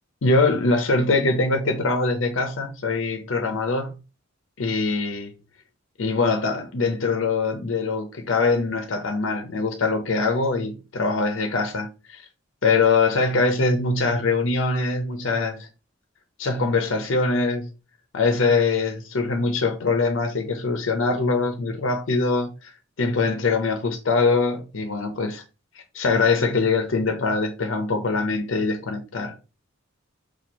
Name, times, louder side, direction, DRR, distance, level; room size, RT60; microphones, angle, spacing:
voice 1, 0.2-3.9 4.6-5.3 6.0-12.2 12.6-15.7 16.4-17.7 18.1-22.7 23.0-25.4 25.7-29.4, left 3 dB, 75° left, 0.6 m, -23 dB
4.3 x 2.4 x 2.9 m
head